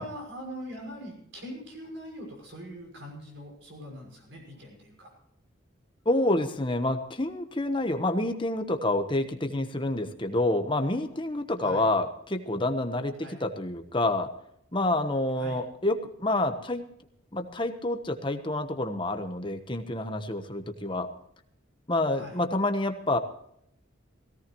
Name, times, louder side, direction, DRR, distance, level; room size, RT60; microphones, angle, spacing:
voice 1, 0.0-5.1 11.6-11.9 13.2-13.4 15.3-15.6 22.1-22.4, equal, 65° right, -1 dB, 6.2 m, -42 dB
voice 2, 6.0-14.3 14.7-16.8 17.3-21.1 21.9-23.2, left 2 dB, 25° left, 7 dB, 1.1 m, -28 dB
17.5 x 17.0 x 3.1 m, 0.72 s
head